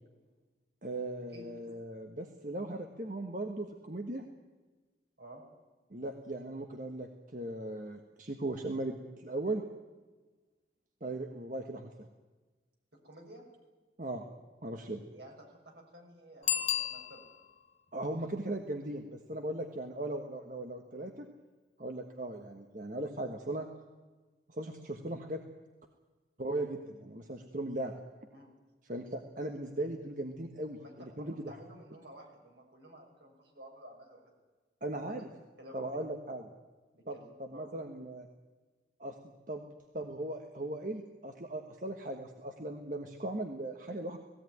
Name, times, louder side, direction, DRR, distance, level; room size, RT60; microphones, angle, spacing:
voice 1, 0.8-4.3 5.9-9.6 11.0-12.1 14.0-14.2 14.6-15.0 17.9-21.3 21.8-23.7 24.5-25.4 26.4-27.9 28.8-31.5 34.8-35.3 35.7-36.5 37.1-38.3 39.0-39.2 39.5-39.6 39.9-44.2, right 1 dB, 45° right, 4 dB, 1.4 m, -38 dB
voice 2, 13.0-13.4 15.1-15.3 15.6-17.2 28.3-28.5 30.8-34.3 34.9-35.2 35.6-35.9 37.1-37.7, right 1 dB, 70° right, 1 dB, 6.2 m, -52 dB
Bicycle bell, 16.4-17.6 23.1-23.2, left 10 dB, 40° left, 0.6 m, -33 dB
18.0 x 17.0 x 9.5 m, 1.3 s
head